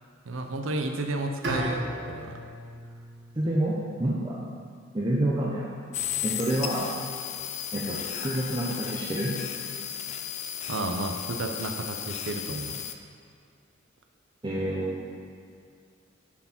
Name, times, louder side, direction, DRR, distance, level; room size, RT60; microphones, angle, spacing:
voice 1, 0.2-2.3 10.7-12.8, right 2 dB, 90° right, 4 dB, 0.6 m, -32 dB
Bowed string instrument, 1.4-4.5, equal, 60° right, 1.4 m, -36 dB
voice 2, 3.4-4.4 4.9-5.7 6.2-6.9 7.7-9.3 14.4-15.1, right 1 dB, 25° right, -5 dB, 0.7 m, -28 dB
sound 1, 5.9-12.9, left 10 dB, 35° left, 0.3 m, -35 dB
7.1 x 4.6 x 5.9 m, 2.3 s
head